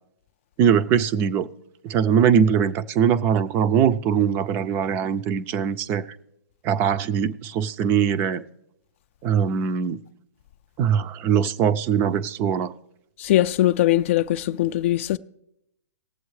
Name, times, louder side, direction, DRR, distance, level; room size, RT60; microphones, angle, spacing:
voice 1, 0.6-1.5 1.8-6.0 6.6-8.4 9.2-10.0 10.8-12.7, right 8 dB, 25° right, 0.5 m, -21 dB
voice 2, 13.2-15.2, left 14 dB, 45° left, 0.4 m, -21 dB
19.0 x 7.6 x 3.2 m
hypercardioid pair, 145°, 9 cm